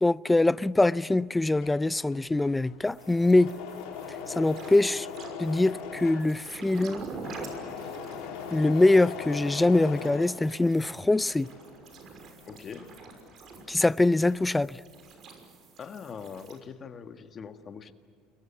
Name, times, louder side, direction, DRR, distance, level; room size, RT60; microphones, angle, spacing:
voice 1, 0.0-3.5 4.3-5.1 5.4-7.1 8.5-11.5 13.7-14.8, left 2 dB, 10° left, 0.6 m, -23 dB
Engine / Mechanisms, 1.3-11.0 11.3-13.7 13.9-14.6, left 6 dB, 70° left, 4.5 m, -40 dB
sound 1, 2.8-16.6, right 4 dB, 50° right, 5.9 m, -47 dB
voice 2, 12.5-12.9 15.8-17.9, left 6 dB, 35° left, 1.8 m, -42 dB
29.5 x 22.0 x 7.3 m
supercardioid pair, 90°, 0 cm